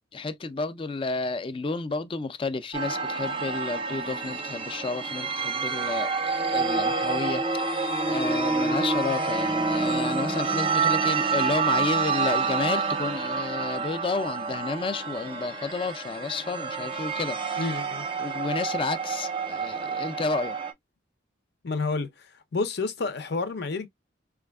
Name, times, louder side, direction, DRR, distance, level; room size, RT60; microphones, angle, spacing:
voice 1, 0.1-17.7 18.2-20.6, left 3 dB, 30° left, 0.4 m, -31 dB
sound 1, 2.7-20.7, right 4 dB, 25° right, 0.5 m, -28 dB
voice 2, 17.6-18.0 21.6-22.1 22.5-23.9, left 3 dB, 60° left, 0.7 m, -29 dB
4.3 x 2.3 x 2.2 m
head